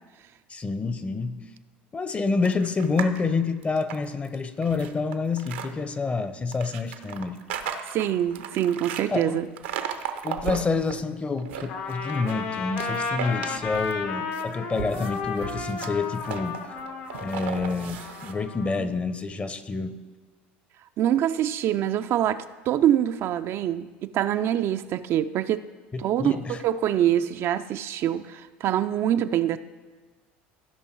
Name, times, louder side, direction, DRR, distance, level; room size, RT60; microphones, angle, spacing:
voice 1, 0.5-1.5 1.9-7.4 9.1-9.5 10.2-16.6 17.2-20.0 25.9-26.6, left 4 dB, 25° left, 12 dB, 0.7 m, -28 dB
sound 1, 2.4-3.2 3.6-5.7 6.5-9.0 9.6-10.9 11.3-12.4 12.7-14.0 14.3-18.3, right 8 dB, 80° right, 0.8 m, -35 dB
voice 2, 7.9-9.5 21.0-25.7 26.0-29.6, right 11 dB, 50° right, 10 dB, 0.4 m, -25 dB
Trumpet, 11.7-18.8, left 4 dB, 65° left, 1.2 m, -33 dB
15.5 x 5.3 x 4.5 m, 1.3 s
hypercardioid pair, 80°, 5 cm